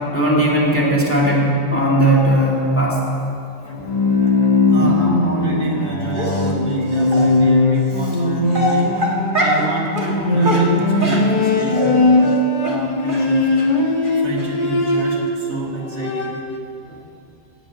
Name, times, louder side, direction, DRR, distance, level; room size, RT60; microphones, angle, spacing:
voice 1, 0.1-3.0 3.8-3.9 14.0-14.2, right 1 dB, 10° left, -5 dB, 2.3 m, -17 dB
Bowed string instrument, 3.7-15.4 15.8-16.6, left 2 dB, 35° left, 0.9 m, -19 dB
voice 2, 4.7-8.9 9.3-13.5 14.2-16.3, right 2 dB, 65° right, -2 dB, 1.9 m, -28 dB
Dog, 6.1-6.5 7.1-7.2 8.0-8.2 8.5-9.7 10.0-10.1 10.4-11.9 12.2-12.4 12.6-12.8 13.1-13.2 13.6-13.7 14.0-14.1 14.4-14.5, equal, 45° right, 1.8 m, -23 dB
16.0 x 5.3 x 8.8 m, 2.7 s
omnidirectional pair, 1.2 m